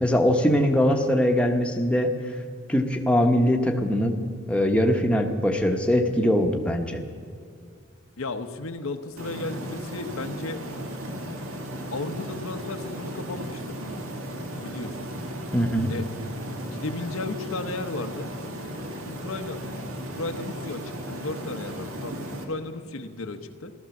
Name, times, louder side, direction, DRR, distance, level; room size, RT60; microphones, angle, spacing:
voice 1, 0.0-2.1 2.7-4.2 4.5-7.0 15.5-15.9, equal, 5° left, 3 dB, 1.0 m, -22 dB
voice 2, 8.2-10.6 11.9-13.8 14.6-15.1 15.9-16.0 16.6-18.3 19.0-19.6 20.0-23.7, left 3 dB, 90° left, 7 dB, 1.0 m, -34 dB
sound 1, 9.2-22.4, equal, 85° right, 1.9 m, -36 dB
15.0 x 13.0 x 7.1 m, 2.3 s
head